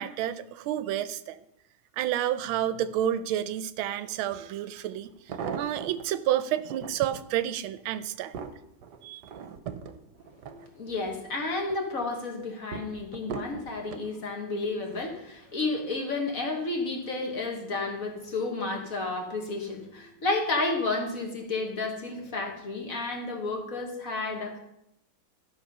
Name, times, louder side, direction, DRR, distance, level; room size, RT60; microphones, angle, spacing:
voice 1, 0.0-1.4 2.0-5.1 5.6-8.4 9.0-9.3, right 11 dB, 80° right, 13 dB, 1.4 m, -30 dB
sound 1, 4.3-4.4 5.0-6.1 6.6-7.2 7.8-11.2 11.6-12.1 12.7-14.1 14.8-15.2 15.5-15.6, right 6 dB, 65° right, 1.2 m, -39 dB
voice 2, 10.4-24.6, left 3 dB, 45° left, 2 dB, 1.7 m, -31 dB
13.0 x 6.2 x 5.4 m, 0.83 s
omnidirectional pair, 2.3 m